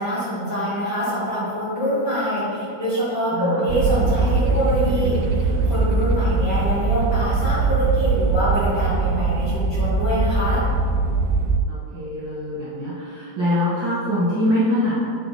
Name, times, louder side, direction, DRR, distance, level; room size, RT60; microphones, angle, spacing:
voice 1, 0.0-10.6, equal, 40° left, -9 dB, 1.6 m, -25 dB
voice 2, 3.3-3.6 11.7-15.1, left 1 dB, 55° right, -9 dB, 1.2 m, -23 dB
sound 1, 3.7-11.6, right 3 dB, 80° right, 2.1 m, -21 dB
8.9 x 4.4 x 4.1 m, 2.4 s
omnidirectional pair, 4.4 m